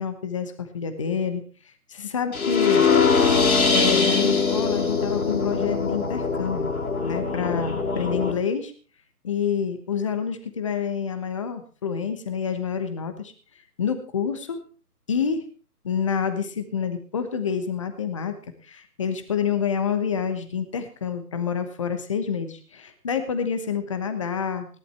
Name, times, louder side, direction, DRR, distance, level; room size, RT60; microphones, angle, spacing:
voice 1, 0.0-1.4 1.9-2.9 3.7-6.7 7.0-8.7 9.2-13.3 13.8-14.6 15.1-15.4 15.8-18.4 18.6-24.7, left 7 dB, 20° left, 9 dB, 1.1 m, -28 dB
sound 1, 2.3-8.3, left 5 dB, 65° left, 3.3 m, -22 dB
17.5 x 11.5 x 4.4 m, 0.37 s
figure-of-eight pair, 155°, 47 cm